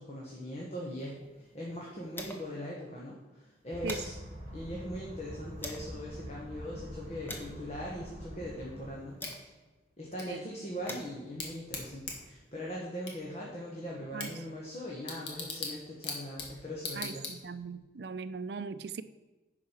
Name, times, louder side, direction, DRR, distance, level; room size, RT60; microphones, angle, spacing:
voice 1, 0.0-4.1 4.5-9.5 10.0-17.3, equal, 35° left, -3 dB, 1.3 m, -41 dB
sound 1, 0.9-2.7 3.0-3.1 3.4-6.0 6.6-9.8 10.5-12.7, left 1 dB, 10° left, 0.8 m, -48 dB
sound 2, 3.7-8.9, equal, 25° right, 2.9 m, -45 dB
Bicycle / Tick, 9.2-17.8, left 4 dB, 65° left, 1.8 m, -43 dB
voice 2, 17.0-19.0, right 5 dB, 60° right, 13 dB, 0.4 m, -39 dB
10.0 x 4.8 x 5.7 m, 1.2 s
head